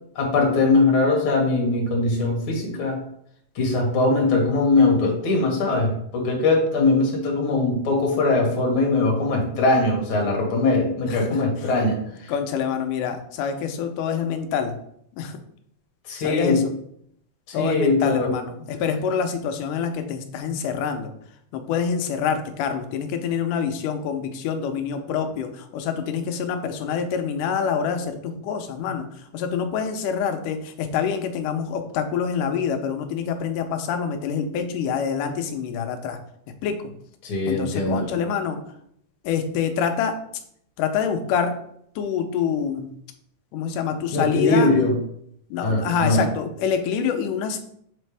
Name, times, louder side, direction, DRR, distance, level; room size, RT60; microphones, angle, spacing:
voice 1, 0.2-3.0 3.6-12.3 16.1-16.6 17.5-18.3 37.2-38.1 44.1-45.0 45.6-46.3, left 2 dB, 50° left, -1 dB, 1.9 m, -21 dB
voice 2, 11.1-11.4 12.3-14.8 15.2-15.4 16.2-16.7 17.5-21.1 21.5-29.1 29.3-36.2 36.6-36.9 37.5-38.6 39.2-40.1 40.8-41.5 42.0-42.9 43.5-44.7 45.5-47.6, left 7 dB, 80° left, 7 dB, 2.2 m, -26 dB
7.1 x 4.1 x 3.3 m, 0.70 s
omnidirectional pair, 3.8 m